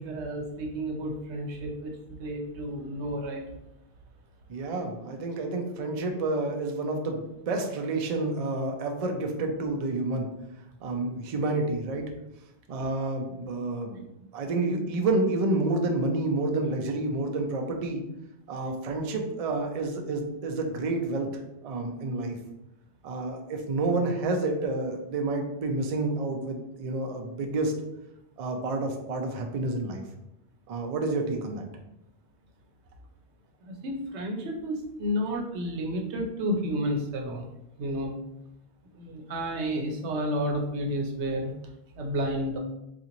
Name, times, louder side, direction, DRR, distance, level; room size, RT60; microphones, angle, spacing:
voice 1, 0.0-3.4 33.6-37.5 37.8-38.2 38.9-41.5 42.0-42.6, equal, 90° right, 2 dB, 1.0 m, -31 dB
voice 2, 4.5-10.3 10.8-12.1 12.7-14.0 14.3-18.0 18.5-21.3 21.6-22.4 23.0-27.7 28.4-30.0 30.7-31.7, right 2 dB, 50° right, 3 dB, 0.4 m, -29 dB
2.9 x 2.5 x 3.7 m, 0.87 s
omnidirectional pair, 1.1 m